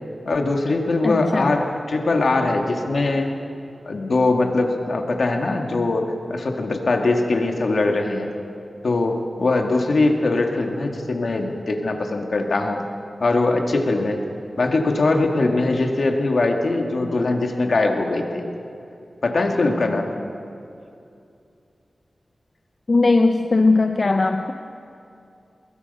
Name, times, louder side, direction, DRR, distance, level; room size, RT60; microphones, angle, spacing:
voice 1, 0.3-3.3 3.9-8.3 8.8-12.8 13.2-14.2 14.6-18.4 19.2-20.2, left 2 dB, 70° left, 3 dB, 2.2 m, -21 dB
voice 2, 1.0-1.5 22.9-24.5, left 3 dB, 45° left, 6 dB, 0.8 m, -18 dB
22.5 x 21.0 x 5.6 m, 2.6 s
wide cardioid pair, 80°, 0 cm